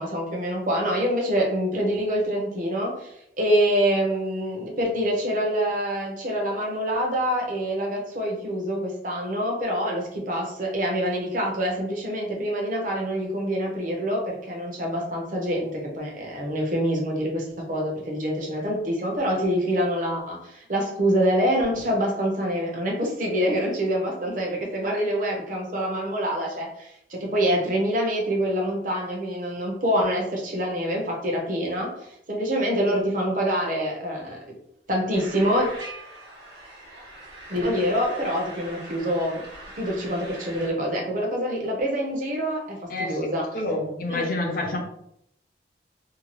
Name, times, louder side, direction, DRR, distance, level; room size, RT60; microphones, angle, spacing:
voice 1, 0.0-34.4 34.9-35.7 37.5-39.4 39.8-43.4 44.1-44.3, equal, 45° right, -1 dB, 0.7 m, -26 dB
sound 1, 35.1-40.7, right 1 dB, 70° right, 1.0 m, -42 dB
voice 2, 42.9-43.2 43.5-44.8, left 1 dB, 50° left, 1 dB, 0.5 m, -28 dB
2.7 x 2.2 x 2.9 m, 0.76 s
head